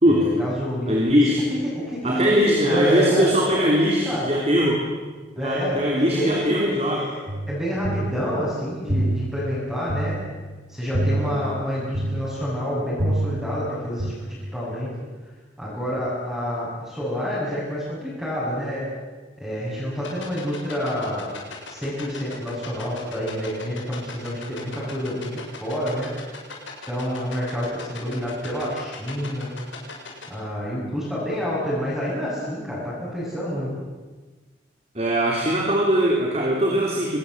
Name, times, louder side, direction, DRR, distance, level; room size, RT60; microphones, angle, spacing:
voice 1, 0.1-1.0 1.6-4.3 5.4-7.1 7.5-10.2 10.7-14.9 15.6-18.9 19.4-21.3 21.7-26.1 26.9-29.5 30.3-33.7, equal, ahead, -9 dB, 8.0 m, -28 dB
voice 2, 0.9-1.4 2.0-4.9 5.4-7.1 11.1-11.5 34.9-37.2, equal, 35° right, -1 dB, 3.6 m, -21 dB
sound 1, 7.3-14.1, right 1 dB, 55° right, 3.6 m, -28 dB
sound 2, 20.0-30.3, left 4 dB, 85° left, 7.2 m, -37 dB
25.5 x 20.5 x 8.2 m, 1.3 s
head